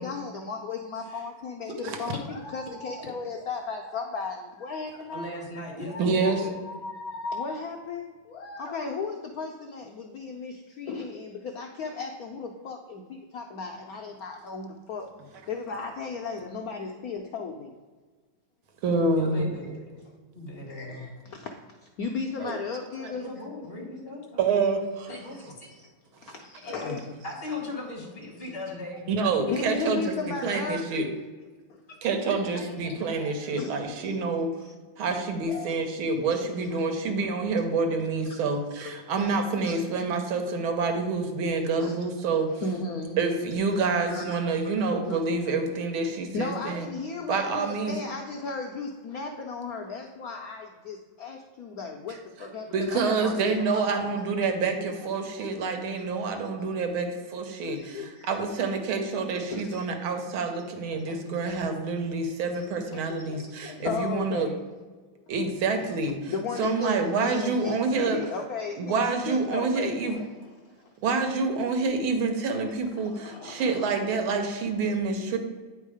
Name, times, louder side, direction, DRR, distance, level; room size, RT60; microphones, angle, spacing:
voice 1, 0.0-5.3 5.9-15.1 15.5-17.7 20.6-21.5 22.0-23.3 25.1-25.4 25.8-25.9 26.2-27.1 27.5-27.6 28.4-28.5 29.5-30.9 31.7-31.8 32.6-32.7 33.6-34.2 34.6-34.7 35.4-36.8 38.4-38.5 38.8-40.0 41.8-42.0 42.5-43.2 44.1-44.4 44.8-45.2 46.3-54.2 55.0-55.1 55.3-55.5 55.9-56.0 57.6-58.4 59.5-59.9 61.0-61.4 62.5-62.6 62.9-64.6 66.3-70.3 70.8-70.9 72.8-74.0 74.8-75.0 75.3-75.4, left 4 dB, 85° left, 3 dB, 0.8 m, -36 dB
voice 2, 5.1-6.5 19.2-19.9 20.3-21.1 23.2-24.4 25.1-25.7 26.6-27.0 27.2-29.1 30.5-30.7 31.9-32.0 32.5-33.6, left 2 dB, 30° left, -2 dB, 1.6 m, -39 dB
voice 3, 6.0-6.4 18.8-19.5 22.4-22.6 24.4-25.1 26.2-26.3 29.1-31.1 32.0-34.5 35.0-42.5 43.2-46.9 47.3-48.0 52.7-64.5 65.3-66.3 66.6-68.2 68.8-70.2 71.0-75.4, right 4 dB, 85° right, 5 dB, 1.7 m, -27 dB
9.1 x 3.6 x 4.8 m, 1.4 s
omnidirectional pair, 2.2 m